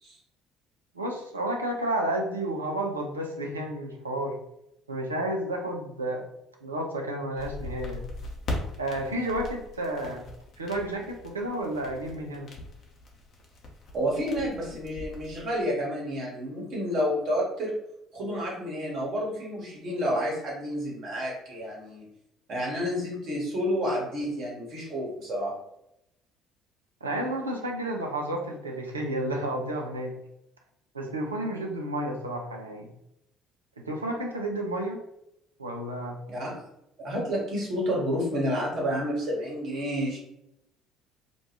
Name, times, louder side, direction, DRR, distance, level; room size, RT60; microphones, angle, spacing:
voice 1, 0.9-4.4 4.9-6.2 6.6-8.1 8.8-10.2 10.6-12.5 27.0-30.1 30.9-32.9 33.8-35.0 35.6-36.2, right 1 dB, 85° right, 1 dB, 0.4 m, -31 dB
sound 1, 7.4-15.5, left 2 dB, 45° left, 0.7 m, -40 dB
voice 2, 13.9-17.7 18.1-22.1 22.5-25.5 36.3-36.6 37.0-40.2, equal, 50° right, -3 dB, 1.2 m, -30 dB
2.5 x 2.3 x 2.9 m, 0.80 s
figure-of-eight pair, 55°, 0 cm